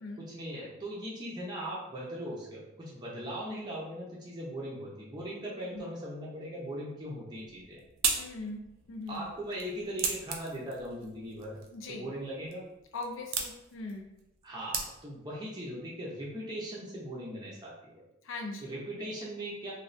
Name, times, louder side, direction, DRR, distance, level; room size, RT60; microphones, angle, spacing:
voice 1, 0.2-7.8 9.1-11.6 11.9-12.7 14.4-18.0 18.6-19.7, equal, 20° right, -6 dB, 0.6 m, -39 dB
voice 2, 5.5-5.8 8.1-8.6 8.9-9.3 11.7-12.1 12.9-14.1 18.2-19.1, left 3 dB, 70° left, 3 dB, 0.5 m, -40 dB
sound 1, 7.3-15.3, right 5 dB, 75° right, 0.4 m, -38 dB
3.1 x 2.3 x 2.5 m, 0.88 s
head